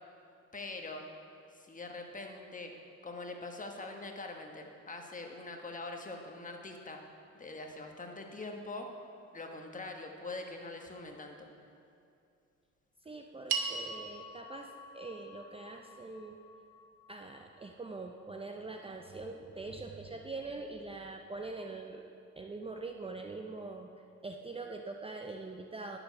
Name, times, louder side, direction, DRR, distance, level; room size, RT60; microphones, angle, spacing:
voice 1, 0.5-1.0 1.5-2.7 3.0-7.0 7.3-8.9 9.3-11.5, left 2 dB, 25° left, 3 dB, 1.3 m, -43 dB
voice 2, 13.0-16.4 17.1-22.1 22.4-23.9 24.2-26.0, right 3 dB, 20° right, 3 dB, 0.6 m, -43 dB
sound 1, 13.5-18.0, right 5 dB, 75° right, 1.0 m, -41 dB
10.5 x 7.0 x 5.7 m, 2.5 s
cardioid pair, 90°, 30 cm